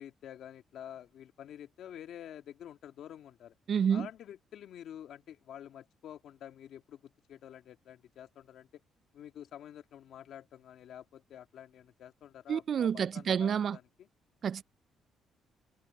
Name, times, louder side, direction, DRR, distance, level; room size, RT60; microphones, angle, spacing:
voice 1, 0.0-3.5 3.9-8.8 9.1-14.1, left 10 dB, 75° left, 1.8 m, -49 dB
voice 2, 3.7-4.1 12.5-13.8 14.4-14.6, right 7 dB, 55° right, 0.3 m, -29 dB
cardioid pair, 90°, 0 cm